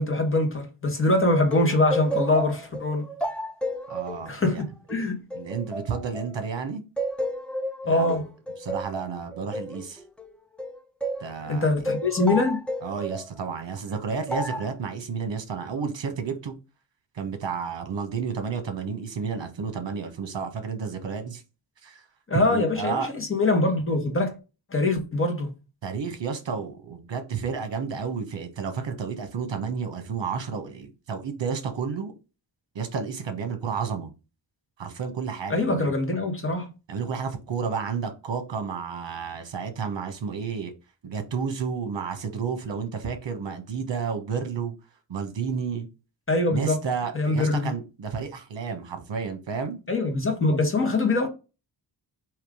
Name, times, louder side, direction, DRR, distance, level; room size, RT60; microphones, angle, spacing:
voice 1, 0.0-3.1 4.3-5.2 7.9-8.3 11.5-12.6 22.3-24.3 24.7-25.5 35.5-36.7 46.3-46.8 47.1-47.7 49.9-51.3, left 2 dB, 30° left, 1.3 m, -23 dB
sound 1, 1.5-6.5 7.0-11.3 11.9-13.3 14.3-14.7, equal, 5° left, 0.3 m, -32 dB
voice 2, 3.9-4.6 5.3-6.8 7.8-8.2 8.6-10.0 11.2-11.8 12.8-16.5 17.1-21.4 21.8-22.0 22.4-23.1 25.8-32.1 32.7-34.1 34.8-35.9 36.9-40.7 41.0-44.7 45.1-45.9 46.5-49.8, right 6 dB, 70° right, 1.1 m, -31 dB
3.6 x 3.0 x 4.8 m
wide cardioid pair, 155°, 45 cm